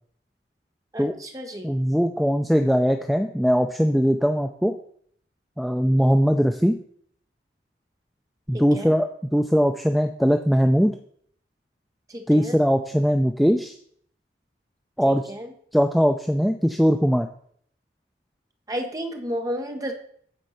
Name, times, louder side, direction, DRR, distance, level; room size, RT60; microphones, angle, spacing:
voice 1, 0.9-1.8 8.5-8.9 12.1-12.6 15.1-15.5 18.7-19.9, equal, 20° right, 4 dB, 1.0 m, -32 dB
voice 2, 1.6-4.7 5.6-6.8 8.5-9.1 9.3-11.0 12.3-13.7 15.0-15.2 15.7-17.3, equal, ahead, 5 dB, 0.4 m, -20 dB
9.1 x 4.4 x 5.6 m, 0.62 s
head